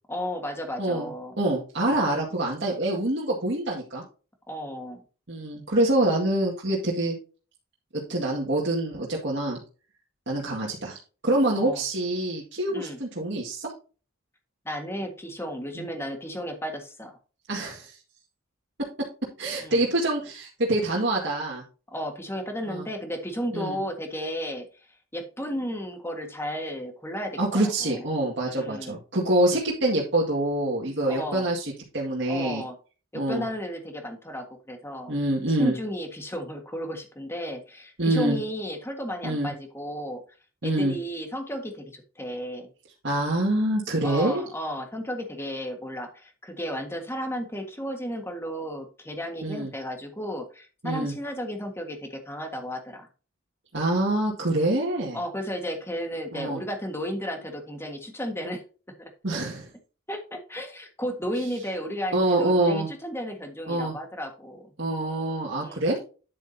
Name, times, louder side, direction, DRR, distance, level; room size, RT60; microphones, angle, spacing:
voice 1, 0.1-1.4 4.5-5.0 11.6-11.8 12.7-13.0 14.6-17.2 19.6-19.8 21.9-24.7 25.1-28.0 28.5-28.9 31.1-31.5 32.2-32.8 33.1-35.2 35.5-40.2 40.6-42.7 44.0-53.1 55.1-58.6 59.0-59.1 60.1-64.7 65.6-66.0, equal, 10° left, 4 dB, 1.6 m, -34 dB
voice 2, 0.8-1.1 1.4-4.0 5.3-7.2 7.9-9.6 10.3-13.7 15.8-15.9 17.5-18.0 19.4-21.6 22.7-22.9 23.5-23.8 27.4-32.6 33.1-33.5 35.1-35.7 38.0-38.4 39.2-39.5 40.6-40.9 43.0-44.4 49.4-49.7 50.8-51.1 53.7-55.2 56.3-56.6 59.2-59.7 62.1-62.9 63.7-64.0 64.8-66.0, right 1 dB, 55° right, -4 dB, 2.0 m, -26 dB
10.0 x 7.6 x 2.8 m, 0.35 s
head